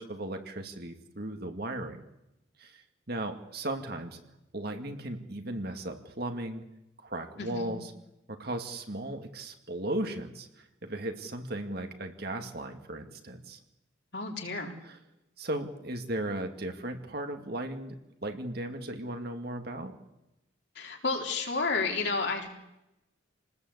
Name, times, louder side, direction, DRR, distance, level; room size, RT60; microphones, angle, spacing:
voice 1, 0.0-2.0 2.6-4.2 4.5-6.6 7.0-7.9 8.3-13.6 14.8-15.0 15.4-18.0 18.2-19.9, right 1 dB, 50° right, 5 dB, 2.5 m, -36 dB
voice 2, 7.4-7.8 14.1-14.7 20.8-22.5, left 3 dB, 55° left, 1 dB, 4.1 m, -31 dB
28.5 x 19.5 x 8.2 m, 0.93 s
head